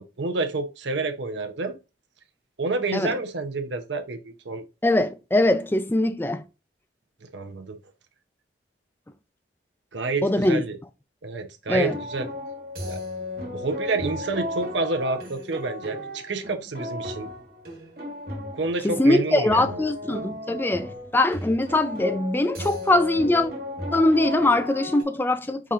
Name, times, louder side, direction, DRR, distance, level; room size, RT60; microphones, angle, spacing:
voice 1, 0.0-1.8 2.6-4.6 7.2-7.8 9.9-10.8 11.2-12.3 12.9-13.0 13.5-17.3 18.5-19.8, right 3 dB, 75° right, 0.8 m, -29 dB
voice 2, 4.8-6.4 10.2-10.6 11.7-12.0 18.8-23.5 23.9-25.7, left 1 dB, 10° left, 0.4 m, -22 dB
sound 1, 11.7-25.0, left 1 dB, 50° right, 1.5 m, -35 dB
5.0 x 4.2 x 2.5 m
head